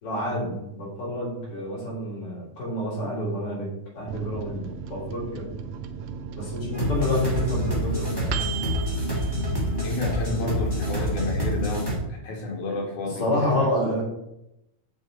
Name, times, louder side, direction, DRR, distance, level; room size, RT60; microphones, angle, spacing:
voice 1, 0.0-3.7 3.9-4.6 4.9-5.5 6.3-8.4 13.2-14.0, left 1 dB, 45° left, -5 dB, 4.2 m, -28 dB
Microwave oven, 4.1-10.2 10.6-10.7 10.9-11.6, right 7 dB, 75° right, 1.9 m, -36 dB
sound 1, 6.7-12.0, equal, 10° right, 1.8 m, -27 dB
voice 2, 9.8-13.7, left 2 dB, 75° left, 0 dB, 3.2 m, -31 dB
7.8 x 7.6 x 4.0 m, 0.86 s
omnidirectional pair, 3.5 m